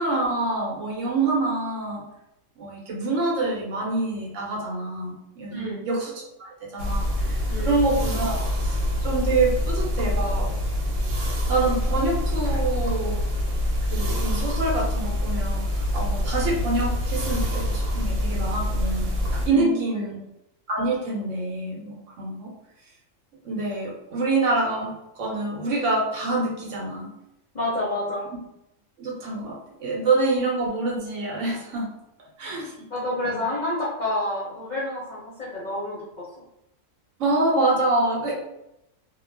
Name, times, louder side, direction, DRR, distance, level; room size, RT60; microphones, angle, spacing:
voice 1, 0.0-2.0 2.6-10.5 11.5-13.2 13.9-19.1 19.4-20.2 20.7-22.5 23.4-27.1 29.0-31.9 32.4-32.7 33.2-33.5 37.2-38.4, right 2 dB, 65° right, -2 dB, 1.0 m, -26 dB
voice 2, 5.5-5.8 7.5-7.7 19.5-20.0 27.5-28.3 32.9-36.2, left 1 dB, 45° left, -7 dB, 0.7 m, -29 dB
sound 1, 6.8-19.5, left 1 dB, 90° right, 1.1 m, -25 dB
2.4 x 2.2 x 3.2 m, 0.84 s
omnidirectional pair, 1.5 m